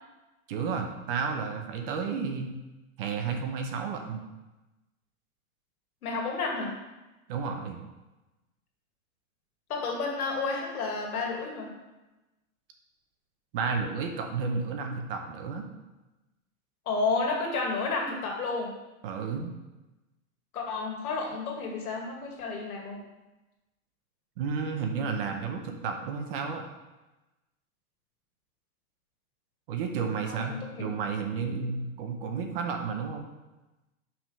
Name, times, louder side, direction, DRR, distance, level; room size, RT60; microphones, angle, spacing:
voice 1, 0.5-2.5 3.0-4.2 7.3-7.8 13.5-15.6 19.0-19.5 24.4-26.6 29.7-33.2, right 5 dB, 40° right, 4 dB, 0.8 m, -32 dB
voice 2, 6.0-6.7 9.7-11.7 16.9-18.7 20.5-23.0 30.3-30.9, left 3 dB, 90° left, 0 dB, 2.1 m, -31 dB
5.6 x 3.7 x 5.5 m, 1.1 s
supercardioid pair, 160°, 43 cm